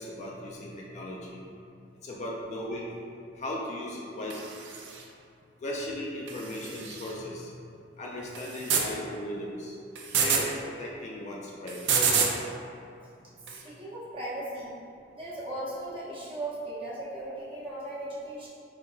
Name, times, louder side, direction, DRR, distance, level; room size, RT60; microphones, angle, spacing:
voice 1, 0.0-1.5 2.0-2.9 3.3-4.6 5.6-7.6 8.0-9.8 10.2-12.1, left 1 dB, 40° left, -3 dB, 0.3 m, -37 dB
sound 1, 4.3-5.0 6.3-7.1 8.3-8.9 10.0-10.4 11.7-12.3 13.5-13.6, right 6 dB, 85° right, 0.4 m, -28 dB
voice 2, 13.5-14.8 15.1-18.5, right 1 dB, 30° right, -8 dB, 0.7 m, -37 dB
3.8 x 2.7 x 2.3 m, 2.5 s
head